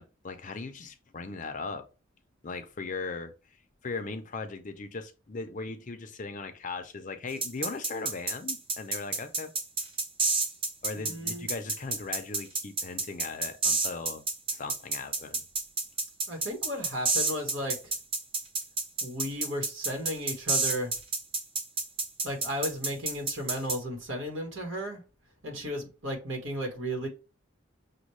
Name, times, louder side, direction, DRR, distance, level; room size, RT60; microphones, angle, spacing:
voice 1, 0.0-1.9 2.4-3.3 3.8-9.5 10.8-14.2 14.5-15.4, left 4 dB, 40° left, 0.5 m, -38 dB
sound 1, 7.4-23.8, right 3 dB, 25° right, 0.7 m, -29 dB
voice 2, 10.9-11.5 16.3-17.9 19.0-20.9 22.2-25.0 25.4-27.1, equal, 70° right, 1.5 m, -34 dB
6.2 x 2.2 x 3.1 m
head